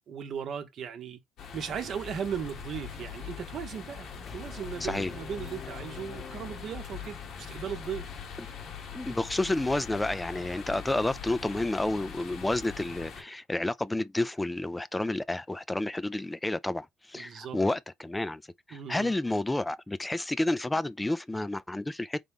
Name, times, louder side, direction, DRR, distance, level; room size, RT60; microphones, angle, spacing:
voice 1, 0.1-1.2 1.5-8.1 17.1-17.6 18.7-19.1, right 8 dB, 60° right, 0.9 m, -37 dB
sound 1, 1.4-13.2, left 7 dB, 75° left, 1.3 m, -42 dB
sound 2, 4.3-7.3, left 6 dB, 40° left, 0.9 m, -46 dB
voice 2, 4.8-5.1 8.9-18.4 18.7-22.2, left 2 dB, 15° left, 0.3 m, -30 dB
3.7 x 3.2 x 3.5 m
supercardioid pair, 65°, 0 cm